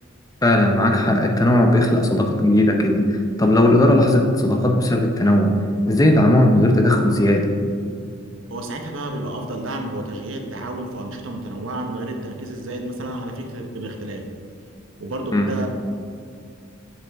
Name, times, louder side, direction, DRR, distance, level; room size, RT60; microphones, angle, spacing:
voice 1, 0.4-5.5 5.9-7.5 15.3-15.5, left 1 dB, 15° left, 3 dB, 0.6 m, -17 dB
voice 2, 8.5-14.2 15.0-15.7, right 1 dB, 70° right, 3 dB, 0.9 m, -30 dB
7.7 x 6.4 x 3.4 m, 2.4 s
head